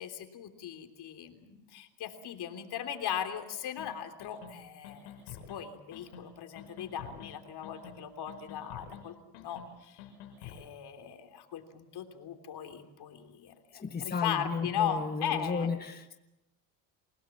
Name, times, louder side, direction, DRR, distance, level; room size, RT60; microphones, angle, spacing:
voice 1, 0.0-10.0 10.4-15.7, left 9 dB, 55° left, 7 dB, 3.4 m, -38 dB
sound 1, 3.8-3.9 4.2-4.5 4.8-5.6 5.9-6.2 6.6-7.3 7.6-8.0 8.3-9.0 9.3-9.7 10.0-10.6, left 10 dB, 85° left, 6.4 m, -47 dB
voice 2, 13.7-16.1, left 5 dB, 20° left, 6 dB, 1.4 m, -34 dB
28.5 x 17.5 x 7.3 m, 1.0 s
supercardioid pair, 95°, 46 cm